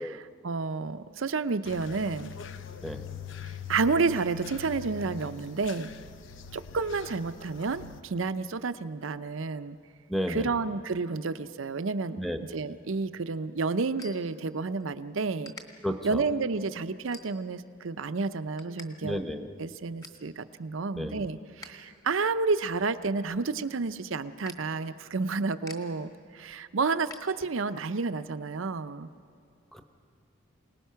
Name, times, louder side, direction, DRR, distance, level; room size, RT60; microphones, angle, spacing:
voice 1, 0.0-2.3 3.7-5.9 6.5-9.8 10.3-12.2 12.5-15.5 16.0-19.2 19.6-29.1, right 4 dB, 70° right, 13 dB, 0.6 m, -30 dB
sound 1, 1.6-8.0, left 6 dB, 65° left, 0.8 m, -43 dB
voice 2, 10.1-10.5 12.2-12.4 15.8-16.2 19.0-19.5 20.9-21.2 29.7-29.8, equal, ahead, 6 dB, 1.0 m, -32 dB
sound 2, 12.8-14.9 15.4-15.6 16.2-16.4 17.1-17.7 18.1-18.9 19.2-19.3 19.6-20.3 20.7-21.8 22.1-27.8, left 2 dB, 20° left, 1.4 m, -50 dB
27.5 x 19.0 x 5.7 m, 2.3 s
head